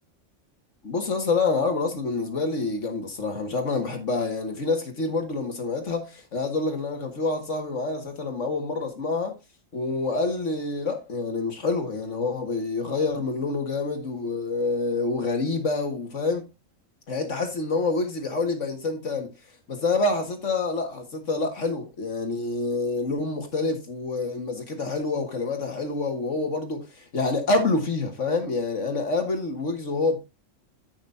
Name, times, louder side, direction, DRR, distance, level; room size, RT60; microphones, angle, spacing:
voice 1, 0.8-9.4 9.7-16.5 17.1-19.3 19.7-30.2, left 3 dB, 70° left, 2.1 m, -27 dB
15.0 x 6.1 x 2.6 m
omnidirectional pair, 1.3 m